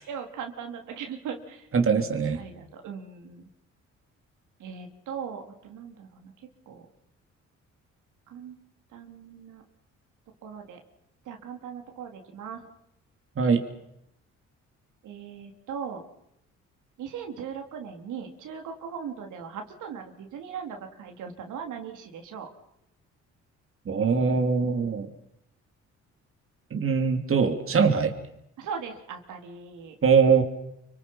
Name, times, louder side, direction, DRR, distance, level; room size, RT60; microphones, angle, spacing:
voice 1, 0.0-1.7 2.0-3.4 4.6-6.3 6.7-6.8 8.3-8.5 8.9-9.6 10.4-10.8 11.3-12.6 15.0-16.0 17.0-22.5 28.6-30.0, right 7 dB, 80° right, 4 dB, 4.0 m, -39 dB
voice 2, 1.7-2.4 13.4-13.6 23.9-25.1 26.7-28.1 30.0-30.4, right 5 dB, 45° right, 5 dB, 3.2 m, -22 dB
29.0 x 26.0 x 5.7 m, 0.80 s
cardioid pair, 90°, 30 cm